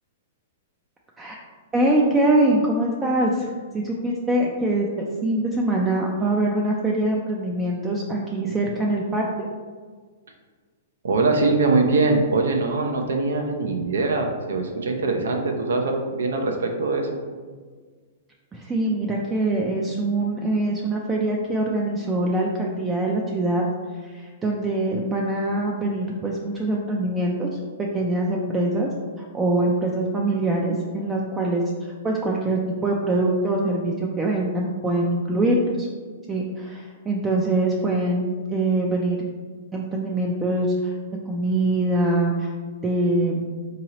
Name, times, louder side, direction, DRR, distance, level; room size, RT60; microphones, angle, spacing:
voice 1, 1.7-9.5 18.5-23.6 24.0-28.9 29.2-35.9 36.3-39.2 39.7-41.0 41.3-42.5 42.8-43.5, right 1 dB, 15° right, -2 dB, 0.3 m, -23 dB
voice 2, 11.0-17.1, right 3 dB, 85° right, 3 dB, 0.6 m, -22 dB
3.8 x 2.9 x 2.9 m, 1.5 s
hypercardioid pair, 140°, 0 cm